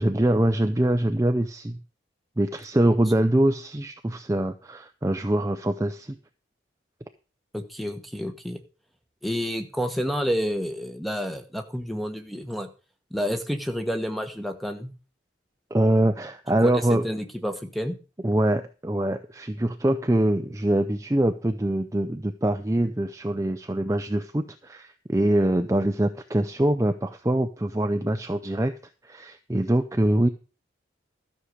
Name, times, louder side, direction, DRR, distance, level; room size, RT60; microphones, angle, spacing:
voice 1, 0.0-1.8 2.4-6.2 15.7-17.0 18.2-28.7 29.0-30.3, right 1 dB, 15° right, 7 dB, 0.5 m, -24 dB
voice 2, 7.5-8.6 9.2-12.7 13.1-14.9 16.6-18.0, equal, ahead, 7 dB, 1.2 m, -29 dB
13.0 x 6.6 x 6.3 m, 0.34 s
head